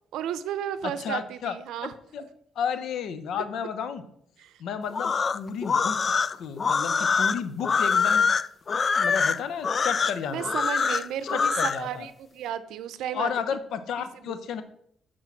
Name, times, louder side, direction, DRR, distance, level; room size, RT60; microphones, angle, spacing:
voice 1, 0.1-1.9 4.4-4.5 10.3-13.3 14.3-14.4, right 10 dB, 85° right, 13 dB, 0.6 m, -33 dB
voice 2, 0.8-1.6 1.8-2.2 2.6-4.0 4.6-8.3 8.9-10.5 11.3-12.1 13.1-14.6, left 7 dB, 75° left, 11 dB, 0.9 m, -32 dB
sound 1, 4.9-11.8, left 5 dB, 40° left, 0.4 m, -24 dB
8.6 x 4.6 x 5.8 m, 0.69 s
cardioid pair, 90°, 0 cm